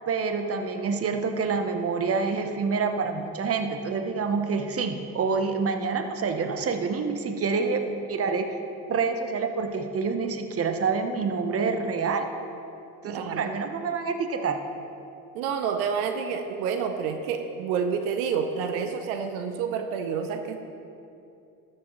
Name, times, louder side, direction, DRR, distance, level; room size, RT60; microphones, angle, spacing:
voice 1, 0.1-8.5 8.9-12.3 13.0-14.6, right 5 dB, 35° right, 7 dB, 0.9 m, -27 dB
voice 2, 13.0-13.5 15.3-20.6, right 6 dB, 80° right, 6 dB, 0.7 m, -29 dB
13.0 x 7.5 x 3.1 m, 2.7 s
hypercardioid pair, 65°, 42 cm